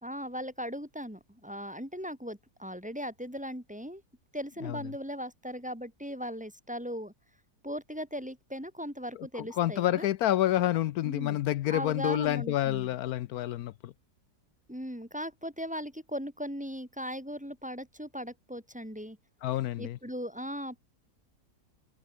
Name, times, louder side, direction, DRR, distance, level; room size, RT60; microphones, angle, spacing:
voice 1, 0.0-4.0 4.3-7.1 7.6-10.1 11.0-11.4 11.7-12.9 14.7-19.2 19.8-20.8, equal, 5° right, 3.6 m, -38 dB
voice 2, 9.3-13.9 19.4-20.0, left 13 dB, 75° left, 1.1 m, -28 dB
omnidirectional pair, 1.7 m